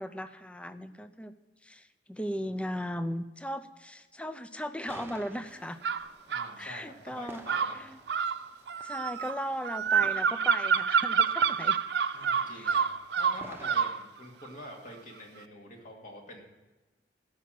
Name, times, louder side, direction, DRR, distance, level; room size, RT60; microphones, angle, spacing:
voice 1, 0.0-1.3 1.6-5.8 6.6-8.0 8.8-11.8 12.6-12.9, equal, 5° left, 11 dB, 0.5 m, -37 dB
sound 1, 4.9-13.7, right 2 dB, 15° right, 0.9 m, -52 dB
sound 2, 5.8-6.5 7.5-14.0, right 6 dB, 70° right, 0.5 m, -27 dB
voice 2, 6.3-7.8 12.1-16.4, left 1 dB, 50° left, 0 dB, 2.4 m, -46 dB
15.5 x 6.1 x 7.5 m, 1.2 s
head